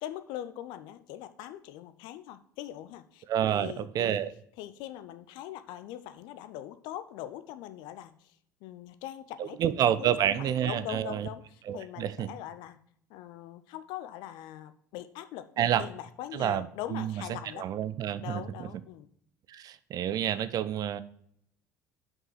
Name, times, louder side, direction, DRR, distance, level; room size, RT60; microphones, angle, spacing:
voice 1, 0.0-4.2 4.6-8.4 8.6-9.6 10.0-12.8 13.1-17.6 18.2-19.1, left 12 dB, 55° left, 12 dB, 0.6 m, -42 dB
voice 2, 3.3-4.3 9.4-11.3 11.7-12.3 15.6-15.8 16.3-18.4 19.5-21.0, right 10 dB, 40° right, 14 dB, 0.5 m, -29 dB
6.0 x 5.4 x 5.8 m, 0.67 s
figure-of-eight pair, 60°, 9 cm